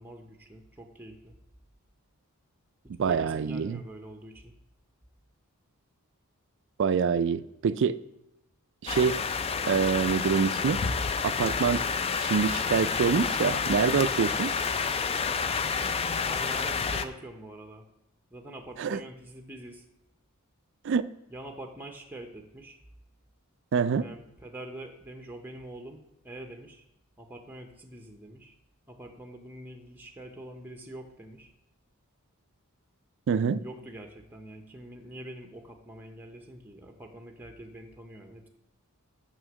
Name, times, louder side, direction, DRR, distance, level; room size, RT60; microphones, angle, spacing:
voice 1, 0.0-1.3 2.8-4.5 16.3-17.9 18.3-19.8 21.3-22.8 24.0-26.8 27.2-28.5 28.9-31.5 33.6-38.5, right 1 dB, 10° right, 3 dB, 0.7 m, -45 dB
voice 2, 3.0-3.8 6.8-8.0 8.8-9.2 9.7-10.8 11.2-11.8 12.2-14.5 18.8-19.0 20.8-21.0 23.7-24.1 33.3-33.6, right 6 dB, 55° right, 15 dB, 0.3 m, -26 dB
sound 1, 8.9-17.1, left 5 dB, 25° left, 0.3 m, -29 dB
6.6 x 6.2 x 6.1 m, 0.86 s
head